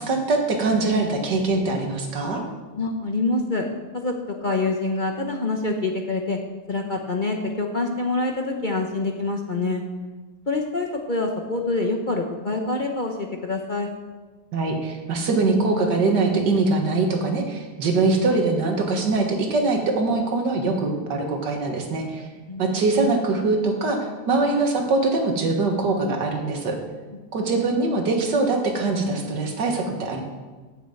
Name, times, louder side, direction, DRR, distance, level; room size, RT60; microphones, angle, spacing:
voice 1, 0.0-2.4 14.5-22.3 22.6-26.8 27.3-30.2, right 3 dB, 85° right, 2 dB, 2.2 m, -23 dB
voice 2, 2.8-3.6 3.9-4.1 4.4-6.4 6.7-9.8 10.5-13.9 22.5-22.8, left 3 dB, 40° left, 2 dB, 0.8 m, -26 dB
9.2 x 7.3 x 7.7 m, 1.3 s
omnidirectional pair, 1.8 m